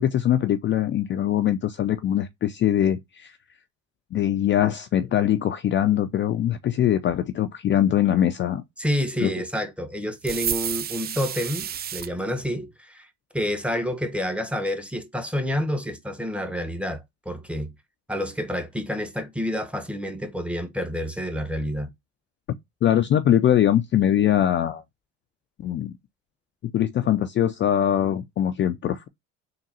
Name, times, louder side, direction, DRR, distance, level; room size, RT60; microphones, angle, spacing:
voice 1, 0.0-3.4 4.1-8.6 9.2-9.3 22.8-24.8 25.6-25.9 26.7-29.1, left 11 dB, 35° left, 0.4 m, -22 dB
voice 2, 8.8-13.1 13.3-17.7 18.1-21.9, equal, 5° right, 0.8 m, -29 dB
sound 1, 10.2-12.1, right 9 dB, 30° right, 0.4 m, -30 dB
3.8 x 2.2 x 4.0 m
hypercardioid pair, 75°, 34 cm